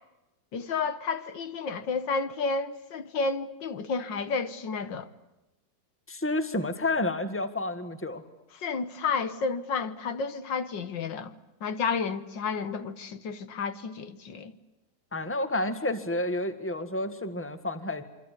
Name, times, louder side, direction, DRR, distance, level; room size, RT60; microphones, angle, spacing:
voice 1, 0.5-5.1 8.5-11.3 11.6-14.5, left 4 dB, 75° left, 2.0 m, -31 dB
voice 2, 6.1-8.2 15.1-18.0, left 2 dB, 5° left, 1.7 m, -30 dB
28.0 x 25.0 x 8.4 m
omnidirectional pair, 2.0 m